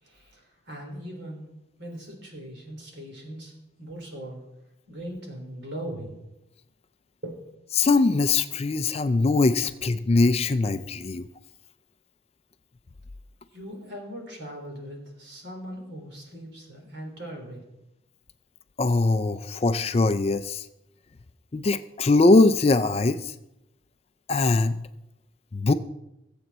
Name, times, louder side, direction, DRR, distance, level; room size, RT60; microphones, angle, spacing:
voice 1, 0.0-1.4 1.8-3.5 3.8-4.4 4.9-6.2 7.2-7.4 13.5-17.6, right 1 dB, 55° right, 1 dB, 3.6 m, -39 dB
voice 2, 7.7-11.2 18.8-20.7 21.5-23.3 24.3-24.8 25.5-25.7, left 3 dB, 30° left, 11 dB, 0.4 m, -21 dB
21.0 x 7.8 x 4.2 m, 0.90 s
head